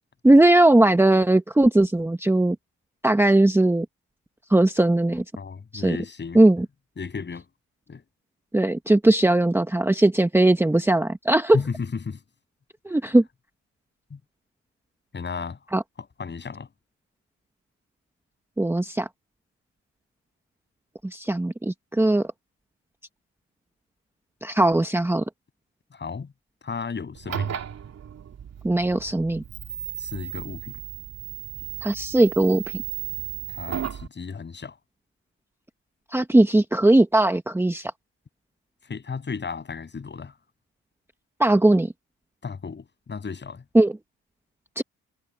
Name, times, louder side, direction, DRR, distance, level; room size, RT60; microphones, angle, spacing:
voice 1, 0.2-2.6 3.0-3.8 4.5-5.2 5.7-6.0 6.3-6.7 8.5-11.6 12.8-13.2 15.7-15.8 18.6-19.1 21.0-22.3 24.4-25.2 28.6-29.4 31.8-32.8 36.1-37.9 41.4-41.9 43.7-43.9 44.8-44.9, right 1 dB, 10° right, 1.1 m, -19 dB
voice 2, 5.4-6.4 7.0-7.5 7.9-8.0 11.5-12.2 12.9-13.0 14.1-14.2 15.1-15.6 16.0-16.7 25.9-26.3 26.6-27.6 30.0-30.8 33.5-34.8 38.8-40.4 42.4-43.6, left 5 dB, 35° left, 7.1 m, -34 dB
sound 1, 27.1-34.1, right 10 dB, 55° right, 3.0 m, -35 dB
cardioid pair, 90°, 30 cm